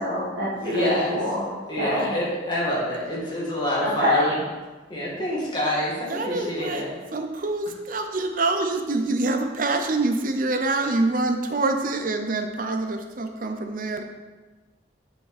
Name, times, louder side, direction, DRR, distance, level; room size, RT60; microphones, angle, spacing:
voice 1, 0.0-2.1 3.8-4.4, left 1 dB, 65° right, -9 dB, 1.6 m, -26 dB
voice 2, 0.6-1.2 1.7-4.3 4.9-6.9, left 1 dB, 25° left, -6 dB, 2.2 m, -27 dB
voice 3, 6.1-6.9 7.1-14.0, right 2 dB, 45° right, 5 dB, 0.6 m, -26 dB
7.8 x 6.6 x 4.3 m, 1.3 s
head